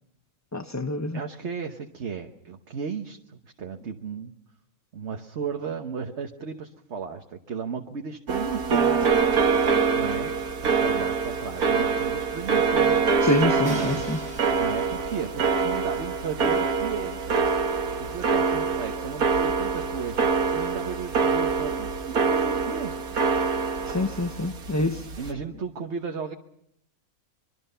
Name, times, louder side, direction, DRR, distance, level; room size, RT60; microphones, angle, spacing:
voice 1, 0.5-1.2 13.2-14.2 23.9-25.0, left 2 dB, 20° left, 0.5 m, -26 dB
voice 2, 1.1-4.3 4.9-9.0 9.9-10.3 10.8-13.1 13.6-14.2 14.5-17.2 18.0-22.9 25.2-26.3, right 6 dB, 55° right, 1.4 m, -35 dB
sound 1, 8.3-25.3, right 5 dB, 85° right, 2.0 m, -25 dB
Crash cymbal, 13.6-16.6, left 2 dB, 45° left, 7.1 m, -45 dB
25.0 x 23.0 x 5.6 m
omnidirectional pair, 1.5 m